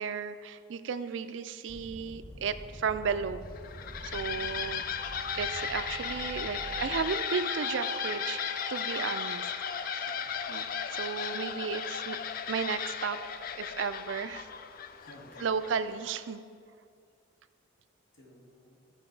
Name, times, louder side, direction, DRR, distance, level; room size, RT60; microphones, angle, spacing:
voice 1, 0.0-3.5 4.0-5.0 5.4-8.4 8.7-10.1 10.5-12.2 12.5-13.2 13.6-14.5 15.4-16.4, right 6 dB, 65° right, 12 dB, 0.4 m, -34 dB
sound 1, 1.7-7.1, equal, 20° left, 1.3 m, -46 dB
sound 2, 3.5-16.0, left 7 dB, 45° left, 0.3 m, -36 dB
voice 2, 4.2-4.7 10.0-10.4 15.0-15.5 18.1-18.8, left 1 dB, 85° left, -2 dB, 1.8 m, -54 dB
sound 3, 4.9-13.0, right 2 dB, 20° right, 0.6 m, -44 dB
13.5 x 4.6 x 4.6 m, 2.3 s
head